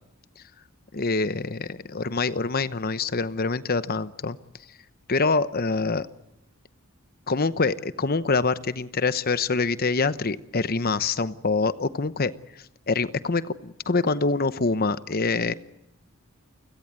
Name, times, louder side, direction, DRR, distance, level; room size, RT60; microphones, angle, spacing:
voice 1, 0.9-4.4 5.1-6.1 7.3-12.3 12.9-15.5, left 3 dB, 45° left, 14 dB, 0.9 m, -25 dB
30.0 x 16.5 x 9.5 m, 0.89 s
head